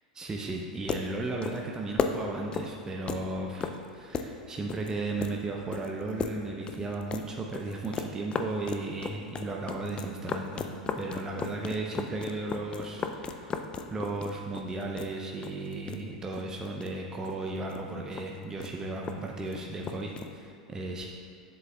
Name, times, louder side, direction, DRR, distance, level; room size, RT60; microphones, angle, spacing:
voice 1, 0.2-10.6 11.0-13.6 13.9-21.1, right 2 dB, 15° right, 0 dB, 0.6 m, -35 dB
sound 1, 0.6-20.5, left 5 dB, 25° left, 0.5 m, -37 dB
11.0 x 7.5 x 2.3 m, 2.2 s
figure-of-eight pair, 85°, 4 cm